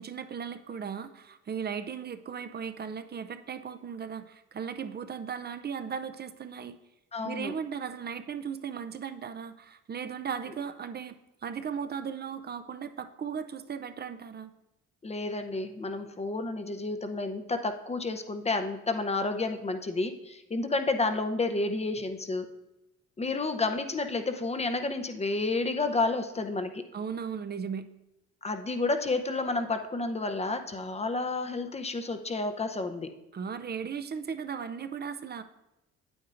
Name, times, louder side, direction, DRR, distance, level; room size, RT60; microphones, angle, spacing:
voice 1, 0.0-6.8 7.2-11.1 11.4-14.5 26.9-27.9 33.3-35.4, right 7 dB, 35° right, 10 dB, 0.5 m, -37 dB
voice 2, 7.1-7.5 15.0-22.5 23.2-26.8 28.4-33.1, left 3 dB, 20° left, 7 dB, 0.6 m, -30 dB
8.9 x 8.7 x 2.5 m, 0.96 s
cardioid pair, 90°, 30 cm